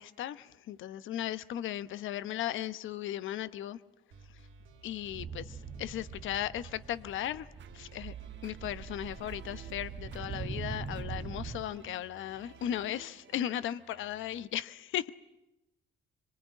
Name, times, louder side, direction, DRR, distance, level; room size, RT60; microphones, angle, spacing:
voice 1, 0.0-3.8 4.3-4.4 4.8-7.5 7.7-8.1 8.4-15.1, left 11 dB, 80° left, 1.0 m, -36 dB
sound 1, 4.1-12.8, right 4 dB, 80° right, 2.7 m, -56 dB
sound 2, 5.0-11.6, right 5 dB, 30° right, 1.8 m, -43 dB
sound 3, 7.6-14.5, right 11 dB, 65° right, 1.0 m, -49 dB
25.0 x 23.5 x 9.9 m
cardioid pair, 90°, 20 cm